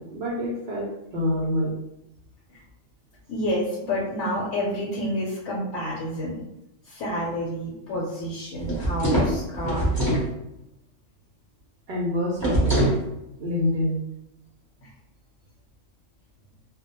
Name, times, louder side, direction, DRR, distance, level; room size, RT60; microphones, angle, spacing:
voice 1, 0.0-1.7 11.9-12.9 13.4-14.0, left 1 dB, 60° right, -5 dB, 0.7 m, -27 dB
voice 2, 3.3-6.4 6.9-10.0 14.8-14.9, equal, 75° left, -4 dB, 0.9 m, -29 dB
sound 1, 8.6-10.3 12.4-13.0, right 1 dB, 20° right, 0.7 m, -23 dB
2.2 x 2.1 x 2.8 m, 0.87 s
omnidirectional pair, 1.3 m